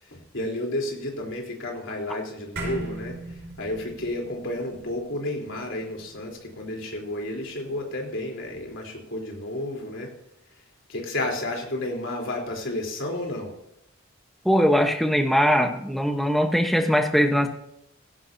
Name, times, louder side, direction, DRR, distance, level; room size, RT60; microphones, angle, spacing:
voice 1, 0.0-10.1 10.9-13.5, left 1 dB, 60° left, 0 dB, 3.8 m, -31 dB
sound 1, 2.6-7.2, right 2 dB, 50° right, 4.6 m, -39 dB
voice 2, 14.4-17.5, equal, ahead, 4 dB, 1.2 m, -21 dB
16.5 x 16.5 x 2.8 m, 0.80 s
head